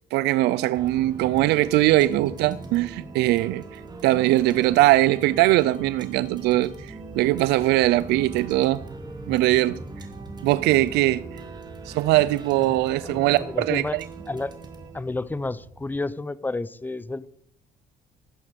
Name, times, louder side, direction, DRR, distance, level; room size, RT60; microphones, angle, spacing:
voice 1, 0.1-8.8 9.3-9.8 10.4-11.4 11.8-13.8, right 16 dB, 85° right, 0.5 m, -21 dB
sound 1, 0.7-16.0, right 3 dB, 25° right, 2.7 m, -40 dB
voice 2, 12.7-14.0 14.3-14.5 14.9-17.3, left 2 dB, 10° left, 0.7 m, -31 dB
15.5 x 11.5 x 5.3 m
cardioid pair, 110°, 17 cm